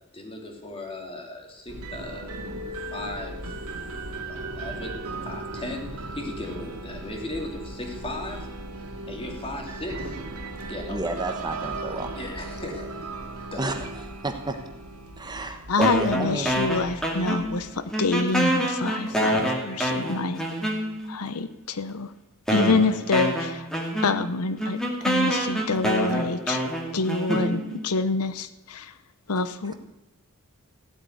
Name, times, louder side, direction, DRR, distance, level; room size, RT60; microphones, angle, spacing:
voice 1, 0.1-2.3 2.9-3.6 4.2-8.5 9.1-10.2 10.7-11.0 11.8-12.9 13.3-13.9, left 1 dB, 25° left, 2 dB, 2.9 m, -37 dB
sound 1, 1.7-18.2, right 2 dB, 85° right, 2.3 m, -37 dB
voice 2, 10.9-12.1 13.6-13.8 14.1-14.6 15.2-16.6 22.5-22.8 27.3-27.5 29.7-29.8, right 2 dB, 20° right, 6 dB, 1.2 m, -30 dB
voice 3, 15.7-20.4 21.1-22.1 22.5-23.7 24.0-28.9 29.3-29.7, left 3 dB, 85° left, 11 dB, 0.8 m, -27 dB
sound 2, 15.8-17.7 17.9-21.2 21.9-22.0 22.5-27.9, equal, 5° left, 2.4 m, -27 dB
16.0 x 8.2 x 9.4 m, 0.98 s
head